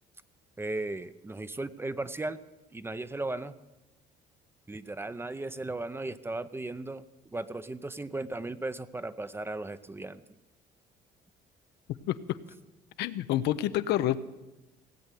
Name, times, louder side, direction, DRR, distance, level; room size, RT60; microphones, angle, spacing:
voice 1, 0.6-2.4 2.7-3.5 4.7-7.0 7.3-10.2, right 2 dB, 15° right, 14 dB, 0.6 m, -36 dB
voice 2, 12.1-12.4 13.0-14.2, left 13 dB, 80° left, 12 dB, 0.7 m, -28 dB
17.5 x 8.0 x 8.3 m, 1.1 s
cardioid pair, 110°, 17 cm